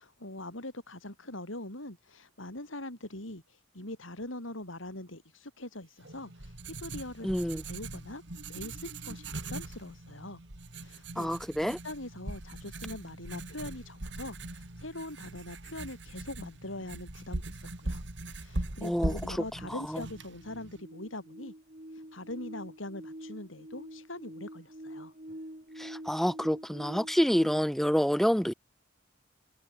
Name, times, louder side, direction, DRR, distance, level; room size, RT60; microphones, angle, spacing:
voice 1, 0.0-8.2 8.5-10.4 10.7-11.3 11.6-21.5 21.9-25.1, left 1 dB, 85° left, 5.9 m, -43 dB
Writing, 6.0-20.8, right 2 dB, 60° right, 2.5 m, -40 dB
voice 2, 7.2-7.6 11.2-11.8 18.8-19.4 19.9-20.0 25.8-28.5, equal, ahead, 0.6 m, -28 dB
sound 1, 19.6-27.6, right 1 dB, 40° right, 3.7 m, -46 dB
head